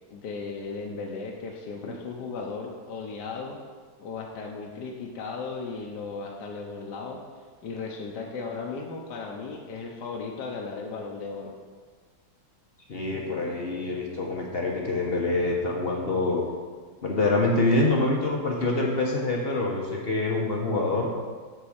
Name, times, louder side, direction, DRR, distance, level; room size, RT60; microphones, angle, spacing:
voice 1, 0.1-3.6 4.0-7.2 7.6-11.5, left 4 dB, 65° left, -1 dB, 1.3 m, -36 dB
voice 2, 12.9-16.4 17.0-21.1, left 2 dB, 45° left, -1 dB, 0.8 m, -25 dB
9.5 x 3.7 x 7.1 m, 1.5 s
omnidirectional pair, 2.3 m